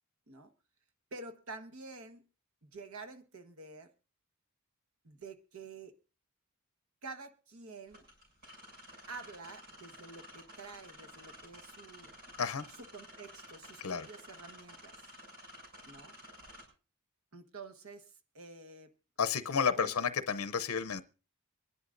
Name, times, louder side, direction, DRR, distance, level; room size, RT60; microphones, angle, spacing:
voice 1, 1.1-2.2 2.6-3.9 5.0-5.9 7.0-8.0 9.1-12.1 12.9-15.0 15.8-16.2 17.3-18.9 19.8-19.9, right 3 dB, 85° right, 8 dB, 1.3 m, -49 dB
sound 1, 7.9-16.6, equal, 45° right, 7.1 m, -53 dB
voice 2, 19.2-21.0, left 6 dB, 85° left, 11 dB, 0.6 m, -31 dB
24.0 x 11.0 x 2.6 m, 0.33 s
head